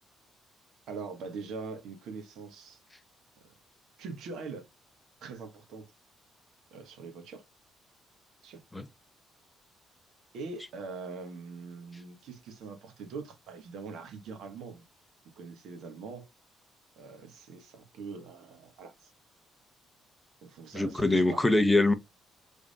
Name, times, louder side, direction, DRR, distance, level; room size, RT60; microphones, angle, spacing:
voice 1, 0.9-2.8 4.0-4.7 5.2-5.9 6.7-7.4 8.4-8.6 10.3-14.8 15.4-16.3 17.0-19.1 20.4-21.5, right 4 dB, 75° right, 1.3 m, -42 dB
voice 2, 20.7-21.9, left 2 dB, 10° left, 0.7 m, -23 dB
3.6 x 3.5 x 2.3 m
supercardioid pair, 65°, 0 cm